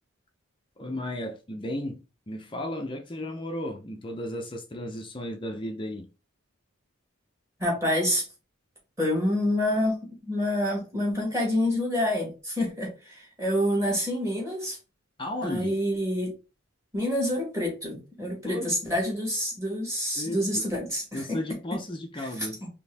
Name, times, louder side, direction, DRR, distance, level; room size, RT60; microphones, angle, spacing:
voice 1, 0.8-2.0 2.3-6.1 15.2-15.8 18.4-18.8 20.1-20.7 21.1-22.6, left 1 dB, 25° left, 0.5 m, -34 dB
voice 2, 7.6-8.3 9.0-14.8 15.4-16.3 16.9-21.4 22.2-22.7, left 1 dB, 15° right, 1.9 m, -27 dB
4.4 x 2.9 x 3.4 m
head